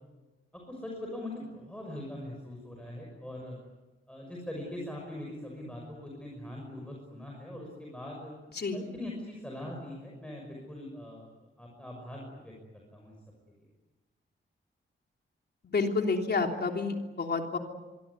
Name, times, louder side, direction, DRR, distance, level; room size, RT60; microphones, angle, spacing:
voice 1, 0.7-3.6 4.1-8.3 8.7-11.3 11.6-13.1, left 1 dB, 5° left, -1 dB, 6.2 m, -42 dB
voice 2, 15.6-17.6, left 4 dB, 50° left, 3 dB, 3.4 m, -29 dB
25.0 x 24.5 x 9.7 m, 1.2 s
wide cardioid pair, 170°, 21 cm